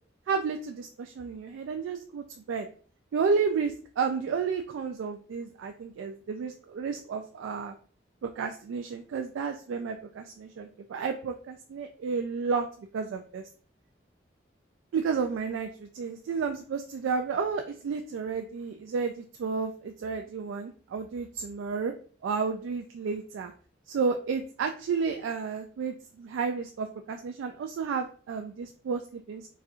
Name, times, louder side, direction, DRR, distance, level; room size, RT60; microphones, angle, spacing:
voice 1, 0.3-2.7 3.1-7.7 8.2-13.4 14.9-21.9 22.2-23.5 23.9-29.5, right 5 dB, 90° right, 5 dB, 0.3 m, -32 dB
4.1 x 2.5 x 2.3 m, 0.43 s
head